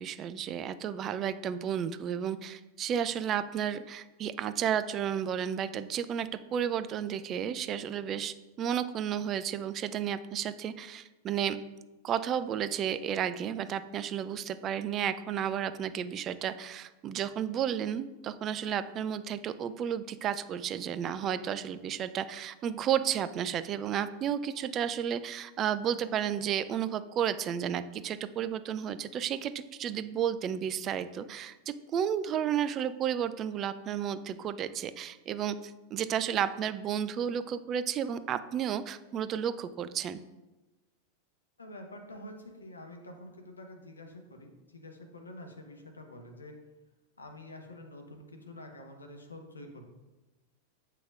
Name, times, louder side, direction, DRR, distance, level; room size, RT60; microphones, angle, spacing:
voice 1, 0.0-11.6 12.0-31.6 31.9-40.2, right 9 dB, 30° right, 13 dB, 0.3 m, -32 dB
voice 2, 41.6-46.6 47.2-49.9, left 1 dB, 75° left, 4 dB, 0.9 m, -47 dB
7.7 x 5.8 x 2.4 m, 1.1 s
figure-of-eight pair, 90°, 0 cm